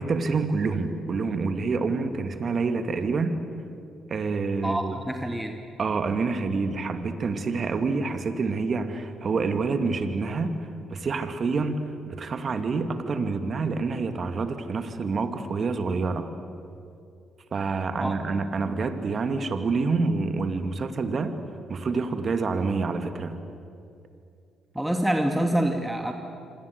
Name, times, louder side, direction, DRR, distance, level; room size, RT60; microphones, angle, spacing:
voice 1, 0.0-3.4 4.1-5.0 5.8-10.6 10.9-16.3 17.5-21.4 21.7-23.4, right 4 dB, 45° right, 8 dB, 2.4 m, -27 dB
voice 2, 4.6-5.6 18.0-18.1 24.7-26.1, right 1 dB, 5° right, 3 dB, 2.4 m, -26 dB
27.0 x 26.5 x 8.2 m, 2.5 s
hypercardioid pair, 45°, 0 cm